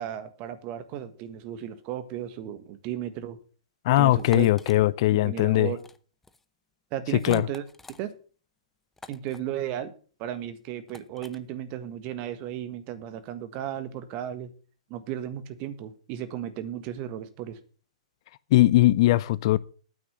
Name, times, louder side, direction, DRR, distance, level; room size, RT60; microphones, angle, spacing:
voice 1, 0.0-3.4 4.0-4.5 5.1-5.8 6.9-7.6 8.0-8.1 9.1-9.9 10.2-14.5 14.9-17.6, right 11 dB, 40° right, 1.5 m, -34 dB
voice 2, 3.8-5.7 7.2-7.5 18.5-19.6, left 16 dB, 50° left, 0.5 m, -20 dB
sound 1, 4.2-4.8 5.7-6.0 6.2-6.4 7.1-8.0 9.0-9.4 10.9-11.4, left 3 dB, 10° left, 0.6 m, -46 dB
9.3 x 6.0 x 8.0 m
figure-of-eight pair, 115°, 4 cm